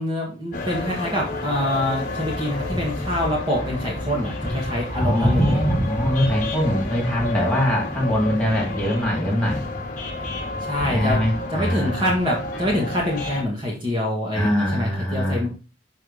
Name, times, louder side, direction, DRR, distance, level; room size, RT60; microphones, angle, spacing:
voice 1, 0.0-5.6 10.6-11.2 11.5-15.5, left 1 dB, 25° right, -3 dB, 1.6 m, -25 dB
sound 1, 0.5-13.4, left 1 dB, 40° left, 1.3 m, -28 dB
voice 2, 4.9-9.6 10.9-12.1 14.3-15.4, equal, 5° left, -4 dB, 2.5 m, -23 dB
6.5 x 5.0 x 3.9 m, 0.33 s
head